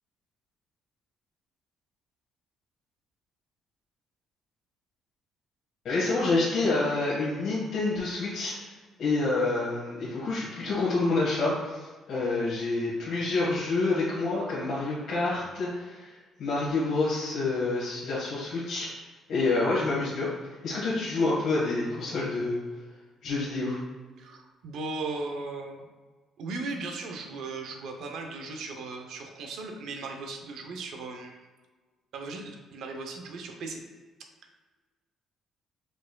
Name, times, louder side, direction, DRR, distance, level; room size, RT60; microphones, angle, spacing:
voice 1, 5.8-8.7 9.0-19.0 19.3-20.3 20.6-22.6 23.2-23.8, left 3 dB, 55° left, -9 dB, 1.3 m, -28 dB
voice 2, 24.2-25.9 26.4-31.4 32.1-33.8, right 3 dB, 65° right, 4 dB, 0.6 m, -37 dB
4.9 x 4.3 x 2.2 m, 1.4 s
cardioid pair, 160°, 0 cm